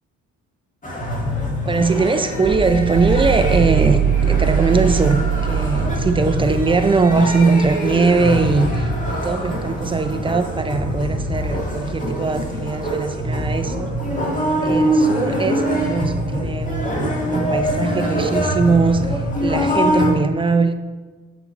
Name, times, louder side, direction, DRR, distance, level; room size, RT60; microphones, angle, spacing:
sound 1, 0.8-20.1, equal, 25° left, 2.0 m, -23 dB
voice 1, 1.7-13.9 14.6-20.7, right 4 dB, 15° right, 0.5 m, -20 dB
sound 2, 2.4-14.4, right 7 dB, 70° right, 1.0 m, -25 dB
sound 3, 6.9-13.0, equal, 85° left, 1.1 m, -41 dB
7.2 x 6.1 x 4.4 m
cardioid pair, 90°, 30 cm